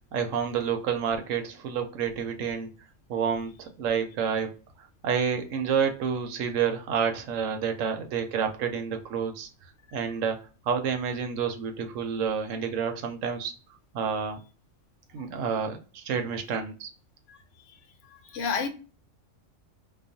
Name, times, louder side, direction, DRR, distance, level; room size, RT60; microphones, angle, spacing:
voice 1, 0.1-2.7 3.1-4.5 5.0-9.5 9.9-13.5 13.9-14.4 15.1-16.9, right 7 dB, 80° right, 1.0 m, -29 dB
voice 2, 18.0-18.7, left 5 dB, 75° left, 0.9 m, -32 dB
2.3 x 2.2 x 2.6 m
omnidirectional pair, 1.3 m